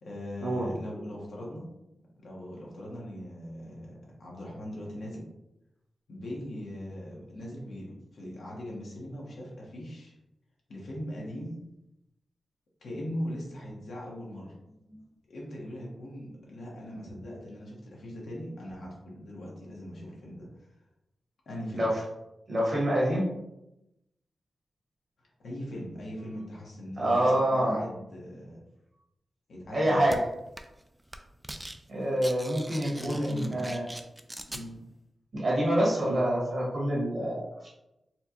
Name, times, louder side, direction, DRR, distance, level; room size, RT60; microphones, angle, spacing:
voice 1, 0.0-1.6 2.2-5.2 6.1-10.1 10.7-11.6 12.8-14.5 15.3-20.5 21.5-21.8 25.4-28.6 29.5-30.1 33.0-33.6 34.5-34.8, equal, 80° left, -3 dB, 1.1 m, -40 dB
voice 2, 22.5-23.2 27.0-27.8 29.7-30.2 31.9-33.9 35.3-37.7, right 1 dB, 50° right, -4 dB, 1.4 m, -26 dB
sound 1, 30.1-30.2 30.6-30.8 31.1-31.8 32.0-34.6, right 1 dB, 15° right, 0.3 m, -41 dB
4.3 x 2.2 x 2.8 m, 0.89 s
wide cardioid pair, 85°, 0 cm